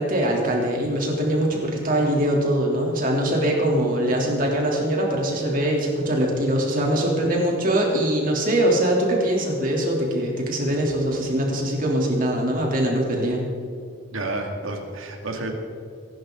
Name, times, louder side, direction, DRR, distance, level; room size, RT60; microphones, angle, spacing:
voice 1, 0.0-13.4, right 1 dB, 40° right, -1 dB, 3.3 m, -22 dB
voice 2, 14.1-15.5, right 2 dB, 80° right, 2 dB, 2.4 m, -30 dB
23.5 x 12.0 x 4.0 m, 2.3 s
head